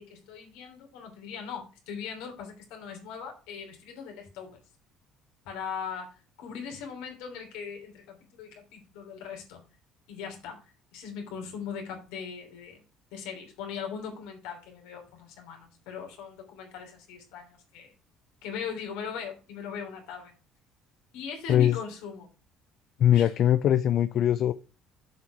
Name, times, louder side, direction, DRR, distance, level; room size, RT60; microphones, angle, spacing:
voice 1, 0.0-4.6 5.4-9.6 10.1-10.6 10.9-12.8 13.1-17.9 18.4-20.3 21.1-22.3 23.1-23.3, left 6 dB, 75° left, 3.2 m, -39 dB
voice 2, 23.0-24.5, left 11 dB, 60° left, 0.5 m, -21 dB
7.5 x 5.9 x 5.8 m
hypercardioid pair, 65°, 0 cm